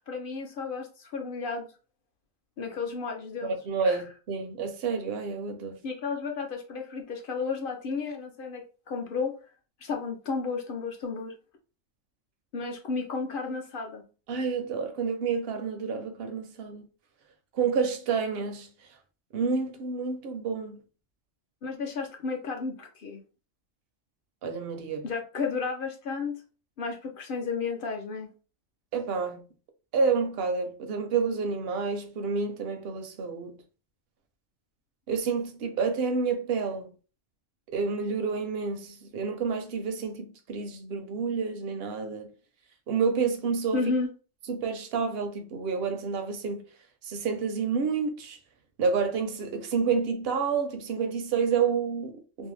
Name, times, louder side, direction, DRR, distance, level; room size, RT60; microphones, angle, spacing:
voice 1, 0.1-1.7 2.6-3.6 3.8-4.0 5.8-9.3 9.8-11.4 12.5-14.0 21.6-23.2 25.0-26.4 26.8-28.3 43.7-44.1, left 4 dB, 55° left, 0.6 m, -32 dB
voice 2, 3.4-5.8 14.3-16.9 17.5-18.7 19.3-20.8 24.4-25.1 28.9-29.4 29.9-33.6 35.1-36.9 37.7-42.3 42.9-43.8 44.5-46.6 47.0-48.4 48.8-52.5, right 5 dB, 65° right, 0.7 m, -29 dB
2.6 x 2.1 x 3.1 m
omnidirectional pair, 1.3 m